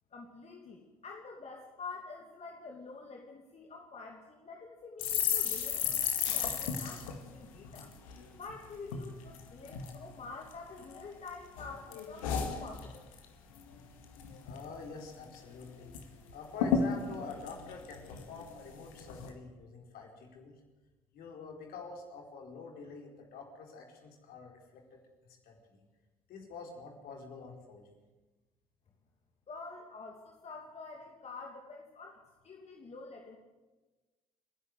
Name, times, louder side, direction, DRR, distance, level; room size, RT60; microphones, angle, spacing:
voice 1, 0.1-7.9 8.4-13.1 29.5-33.4, left 4 dB, 40° left, 1 dB, 2.8 m, -47 dB
sound 1, 5.0-8.5 8.8-9.1 9.3-10.0 10.5-11.3 11.6-13.2 13.5-13.8 14.0-14.6 15.0-15.1 15.3-16.0 16.3-16.4 16.6-18.5 19.0-19.3, left 7 dB, 75° left, 2.2 m, -34 dB
voice 2, 14.4-15.9 16.3-20.6 21.1-25.8 26.3-28.0, left 4 dB, 60° left, 1 dB, 4.7 m, -47 dB
29.5 x 11.0 x 8.1 m, 1.2 s
figure-of-eight pair, 50°, 18 cm